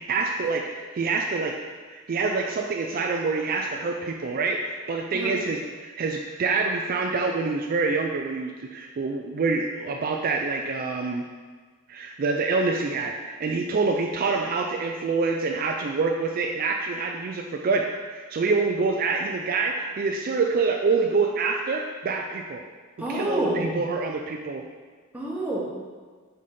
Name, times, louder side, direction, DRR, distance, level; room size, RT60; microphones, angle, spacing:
voice 1, 0.1-1.5 1.9-11.2 11.9-22.6 23.1-24.6, right 4 dB, 45° right, 2 dB, 0.4 m, -26 dB
voice 2, 23.0-23.8 25.1-25.6, right 1 dB, 5° right, -5 dB, 1.1 m, -28 dB
5.1 x 4.1 x 5.3 m, 1.5 s
head